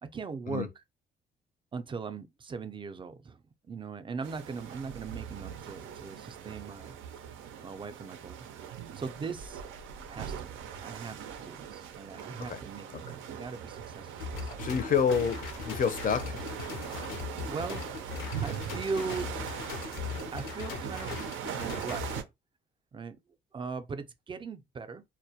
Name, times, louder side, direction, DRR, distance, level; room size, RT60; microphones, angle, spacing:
voice 1, 0.0-0.8 1.7-7.0 7.6-8.5 8.9-9.6 10.1-14.5 17.1-18.2 18.4-19.3 20.3-21.2 21.4-22.1 22.9-23.2 23.5-25.0, right 5 dB, 25° right, 0.4 m, -39 dB
sound 1, 4.2-22.2, right 8 dB, 85° right, 0.4 m, -41 dB
sound 2, 14.2-22.2, left 6 dB, 85° left, 0.6 m, -39 dB
voice 2, 14.6-16.3, left 7 dB, 45° left, 0.5 m, -28 dB
2.1 x 2.1 x 2.7 m
cardioid pair, 90°, 20 cm